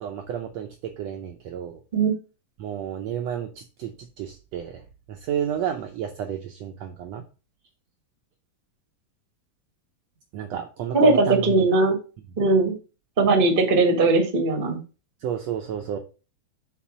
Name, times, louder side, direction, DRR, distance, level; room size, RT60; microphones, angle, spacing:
voice 1, 0.0-1.8 2.6-4.8 5.1-7.2 10.3-11.7 15.2-16.0, right 9 dB, 80° right, 4 dB, 1.5 m, -31 dB
voice 2, 10.9-12.0 12.4-12.7 13.2-14.8, right 3 dB, 40° right, 3 dB, 0.7 m, -19 dB
5.8 x 4.1 x 6.1 m, 0.33 s
omnidirectional pair, 3.8 m